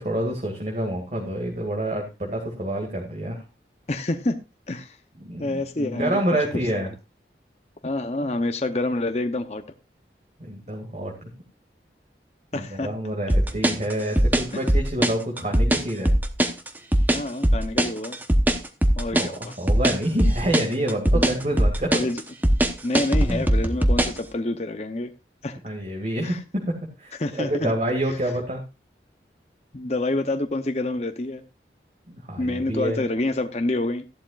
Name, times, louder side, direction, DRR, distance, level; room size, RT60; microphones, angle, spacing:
voice 1, 0.0-3.4 5.2-6.9 10.4-11.3 12.5-16.1 19.1-22.0 25.6-28.6 32.1-33.0, right 1 dB, 40° right, 1 dB, 2.2 m, -28 dB
voice 2, 3.9-4.4 4.7-5.0 5.4-6.2 7.8-9.6 12.5-12.9 17.1-18.2 19.0-19.5 21.1-21.3 21.9-22.2 22.8-25.1 25.4-25.6 26.2-26.4 27.2-27.7 29.7-31.4 32.4-34.0, left 2 dB, 40° left, 7 dB, 0.8 m, -27 dB
sound 1, 13.3-24.2, right 1 dB, 10° right, 1.0 m, -20 dB
14.0 x 11.5 x 2.5 m, 0.27 s
head